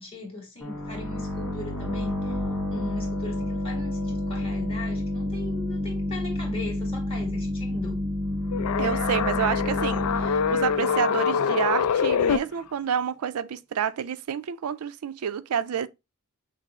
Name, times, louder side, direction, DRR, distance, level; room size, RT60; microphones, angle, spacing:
voice 1, 0.0-2.4 2.7-8.0, left 2 dB, 25° left, 2.0 m, -39 dB
sound 1, 0.6-12.1, left 1 dB, 5° left, 1.7 m, -30 dB
sound 2, 8.5-12.4, left 7 dB, 90° left, 0.4 m, -25 dB
voice 2, 8.8-15.9, right 8 dB, 85° right, 0.4 m, -29 dB
6.0 x 2.0 x 4.1 m
head